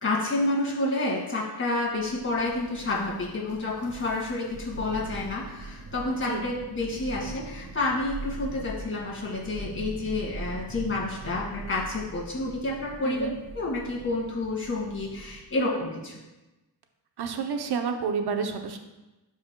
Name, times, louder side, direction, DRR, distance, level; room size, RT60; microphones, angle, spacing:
voice 1, 0.0-13.3 13.5-16.1, left 2 dB, 35° left, -5 dB, 2.1 m, -29 dB
Thunder, 1.9-15.6, right 3 dB, 55° right, 1.6 m, -42 dB
voice 2, 17.2-18.8, right 5 dB, 80° right, 5 dB, 0.8 m, -29 dB
12.0 x 5.0 x 2.2 m, 1.0 s
cardioid pair, 80°, 38 cm